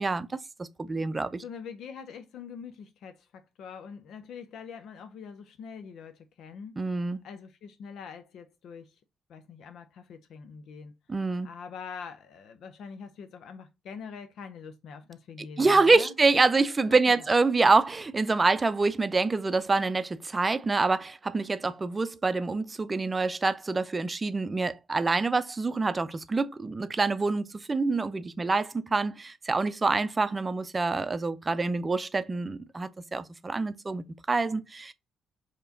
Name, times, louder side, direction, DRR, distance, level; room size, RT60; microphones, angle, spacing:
voice 1, 0.0-1.4 6.8-7.2 11.1-11.5 15.6-34.9, right 3 dB, 30° right, 0.5 m, -26 dB
voice 2, 1.3-6.8 7.2-9.0 9.3-10.9 11.4-16.1 16.9-17.3, left 6 dB, 70° left, 0.5 m, -44 dB
4.6 x 2.9 x 2.6 m
hypercardioid pair, 50°, 0 cm